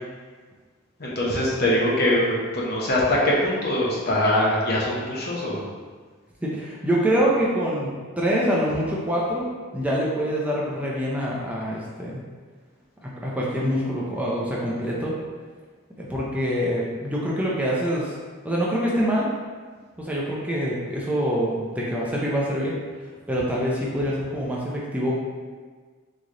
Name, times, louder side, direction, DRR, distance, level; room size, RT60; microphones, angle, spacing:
voice 1, 1.0-5.6, left 1 dB, 50° left, -4 dB, 1.0 m, -22 dB
voice 2, 6.4-12.2 13.0-15.1 16.0-18.1 18.4-19.3 20.0-25.1, equal, 5° right, -5 dB, 0.6 m, -25 dB
4.0 x 3.2 x 3.7 m, 1.5 s
head